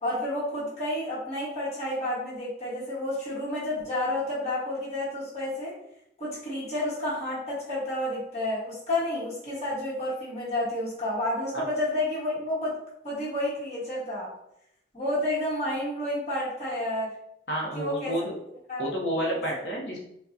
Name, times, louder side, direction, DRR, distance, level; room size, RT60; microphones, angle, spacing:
voice 1, 0.0-5.7 6.2-12.8 13.0-14.3 14.9-17.1 17.7-18.1 18.7-18.8 19.2-19.4, left 1 dB, 35° left, -8 dB, 1.4 m, -30 dB
voice 2, 17.5-18.3 18.8-20.0, equal, 65° left, -2 dB, 0.8 m, -30 dB
4.6 x 2.3 x 2.7 m, 0.80 s
head